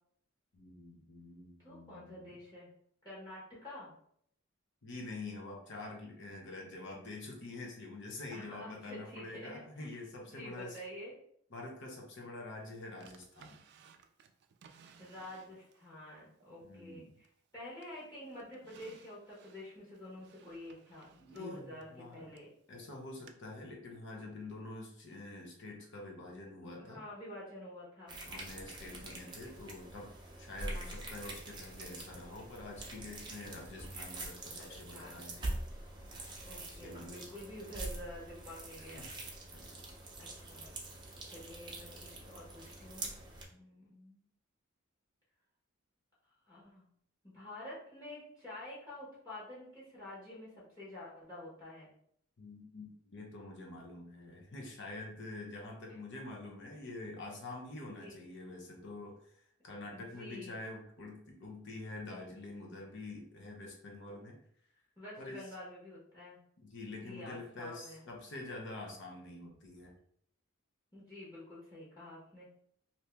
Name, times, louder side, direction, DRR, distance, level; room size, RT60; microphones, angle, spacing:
voice 1, 0.5-2.3 4.8-10.8 11.5-13.6 16.6-17.2 21.2-22.3 22.7-27.0 28.2-30.1 30.4-35.6 36.7-37.3 38.9-39.1 39.5-39.6 52.4-64.4 65.2-65.4 66.6-69.9, left 2 dB, 60° left, 0 dB, 0.8 m, -46 dB
voice 2, 1.6-2.7 3.0-3.9 8.3-11.1 15.0-17.3 17.5-22.5 26.6-28.2 30.6-31.0 33.4-33.7 34.5-35.2 36.4-39.1 40.2-40.6 41.2-43.2 43.5-44.2 46.4-46.8 47.2-51.9 55.9-56.0 58.0-58.2 59.9-60.6 65.0-66.4 66.9-68.0 70.9-72.5, left 1 dB, 20° left, -9 dB, 1.2 m, -49 dB
Drawer open or close, 13.0-15.9 16.4-17.5 17.8-22.5 23.3-23.4, right 6 dB, 55° right, 0.3 m, -61 dB
sound 1, 28.1-43.4, right 2 dB, 20° right, 0.7 m, -45 dB
2.8 x 2.7 x 3.4 m, 0.67 s
head